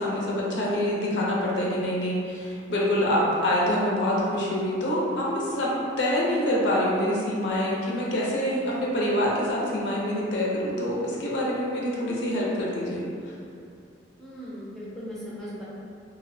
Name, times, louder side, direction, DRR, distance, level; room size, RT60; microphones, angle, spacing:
voice 1, 0.0-13.1, left 1 dB, 75° left, -4 dB, 0.5 m, -26 dB
voice 2, 14.2-15.6, equal, 5° left, -8 dB, 0.4 m, -38 dB
2.6 x 2.0 x 2.6 m, 2.4 s
head